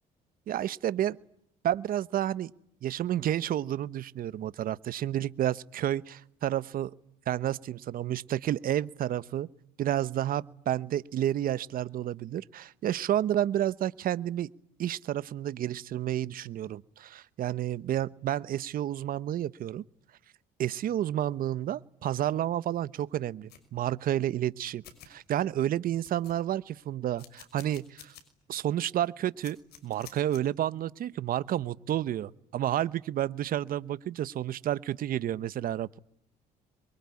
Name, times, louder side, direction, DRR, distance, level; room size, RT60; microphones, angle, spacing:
voice 1, 0.5-1.2 1.6-2.5 2.8-6.9 7.3-9.5 9.8-14.5 14.8-19.8 20.6-28.1 28.5-29.6 29.8-36.0, right 11 dB, 55° right, 18 dB, 1.1 m, -30 dB
sound 1, 23.5-23.7 24.5-24.6 24.8-25.1 25.6-25.7 25.9-26.6 27.2-28.2 28.6-28.7 29.4-30.4, left 9 dB, 70° left, 5.9 m, -50 dB
26.0 x 23.5 x 9.8 m, 0.70 s
cardioid pair, 110°, 17 cm